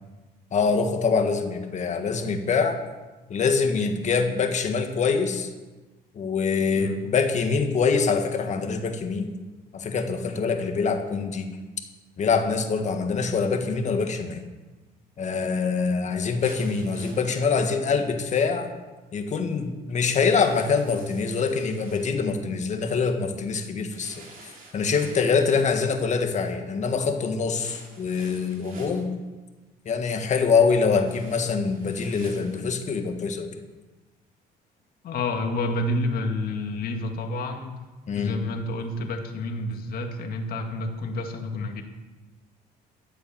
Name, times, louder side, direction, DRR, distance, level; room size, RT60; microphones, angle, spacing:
voice 1, 0.5-2.8 3.3-5.5 6.1-9.3 9.7-11.5 12.2-14.4 15.2-18.7 19.1-29.1 29.8-33.5 38.1-38.4, left 5 dB, 45° left, 5 dB, 1.7 m, -24 dB
sound 1, 16.4-17.7 20.2-22.1 23.9-25.4 27.5-29.1 31.0-32.7, right 3 dB, 55° right, 3.1 m, -49 dB
voice 2, 35.0-37.7 38.1-41.8, left 2 dB, 60° left, 4 dB, 2.1 m, -29 dB
13.0 x 8.0 x 7.3 m, 1.2 s
cardioid pair, 110°, 17 cm